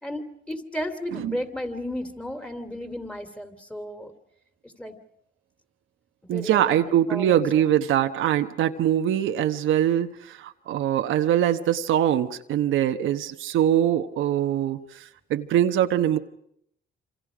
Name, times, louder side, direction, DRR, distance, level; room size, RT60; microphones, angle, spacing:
voice 1, 0.0-4.1 4.8-5.0 6.2-7.7, left 1 dB, 5° left, 8 dB, 2.8 m, -34 dB
voice 2, 6.3-15.0 15.3-16.2, right 11 dB, 85° right, 7 dB, 1.1 m, -23 dB
27.5 x 26.5 x 5.0 m, 0.70 s
cardioid pair, 90°, 20 cm